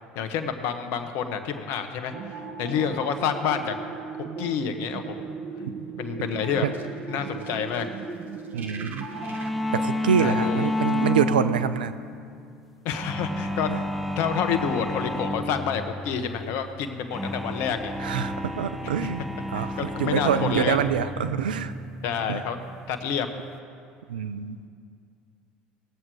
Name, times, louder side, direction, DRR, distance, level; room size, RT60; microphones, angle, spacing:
voice 1, 0.1-3.8 4.1-5.3 6.0-6.7 7.1-7.9 10.2-10.7 12.8-13.7 14.2-17.9 19.5-20.8 22.0-22.6 22.9-23.3, left 7 dB, 65° left, 8 dB, 1.1 m, -28 dB
sound 1, 2.1-9.5, right 5 dB, 45° right, 1.3 m, -37 dB
voice 2, 8.5-9.1 9.7-11.9 13.7-13.8 18.0-19.2 19.5-21.7 22.3-22.4 24.1-24.6, right 8 dB, 85° right, 12 dB, 0.5 m, -26 dB
sound 2, 9.1-23.6, left 1 dB, 5° right, 1.3 m, -31 dB
19.0 x 7.4 x 4.8 m, 2.4 s
hypercardioid pair, 70°, 5 cm